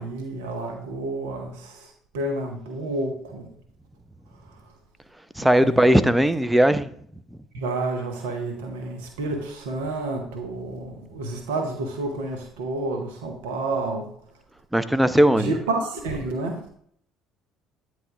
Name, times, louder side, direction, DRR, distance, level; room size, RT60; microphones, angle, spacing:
voice 1, 0.0-3.5 5.4-5.8 7.5-14.1 15.4-16.6, right 2 dB, 75° right, 0.9 m, -30 dB
voice 2, 5.4-6.9 14.7-15.5, right 1 dB, 5° right, 0.5 m, -18 dB
9.0 x 3.3 x 3.7 m
hypercardioid pair, 60°, 0 cm